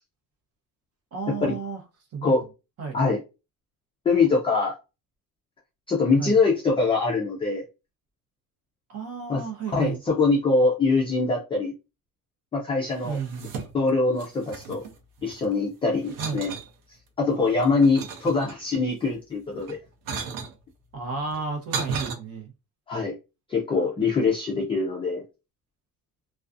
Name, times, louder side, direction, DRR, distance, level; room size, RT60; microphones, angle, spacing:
voice 1, 1.1-1.8 2.1-2.4 2.8-3.0 6.2-6.4 8.9-10.0 13.0-13.5 16.2-16.4 18.3-18.5 20.9-22.5, right 5 dB, 40° right, 0.8 m, -32 dB
voice 2, 4.1-4.7 5.9-7.6 9.3-9.4 9.7-11.7 12.5-13.2 13.7-14.8 15.2-16.5 17.2-19.8 22.9-23.2 23.5-25.2, left 3 dB, 15° left, 0.3 m, -23 dB
sound 1, 12.9-13.9 14.2-15.5 16.0-16.7 17.3-18.8 19.6-20.5 21.3-22.1, right 5 dB, 70° right, 0.7 m, -35 dB
2.4 x 2.3 x 2.4 m
cardioid pair, 170°, 36 cm